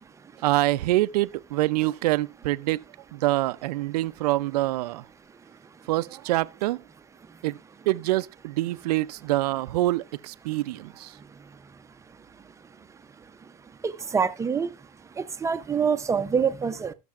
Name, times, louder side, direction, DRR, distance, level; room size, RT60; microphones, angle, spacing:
voice 1, 0.4-2.8 3.1-5.0 5.9-6.8 7.4-7.6 7.9-11.1, right 17 dB, 90° right, 0.5 m, -25 dB
voice 2, 13.8-14.7 15.2-16.9, right 6 dB, 15° right, 0.6 m, -25 dB
19.0 x 6.7 x 2.4 m
supercardioid pair, 125°, 20 cm